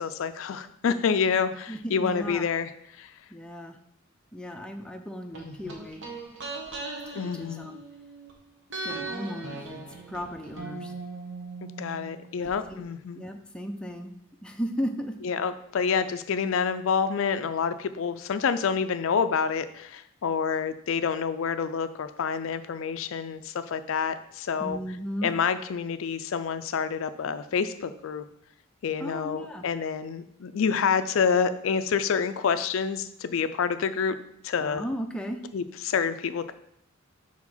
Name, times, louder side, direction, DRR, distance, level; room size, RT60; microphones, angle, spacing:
voice 1, 0.0-2.7 3.0-3.1 5.4-5.5 7.1-7.7 10.7-10.9 11.8-13.2 15.2-24.8 25.2-28.2 28.8-34.1 34.4-34.8 35.5-36.5, left 6 dB, 65° left, 11 dB, 0.4 m, -28 dB
voice 2, 1.7-2.4 3.3-3.8 4.3-6.0 7.1-7.8 8.8-9.8 10.1-10.9 12.4-12.9 13.1-14.1 14.4-15.2 24.6-25.3 29.0-29.6 34.6-35.4, equal, 5° left, 3 dB, 0.5 m, -35 dB
sound 1, 5.3-8.3 8.7-12.5 12.8-12.9, right 3 dB, 60° right, 1.3 m, -39 dB
4.8 x 4.3 x 5.5 m, 0.70 s
head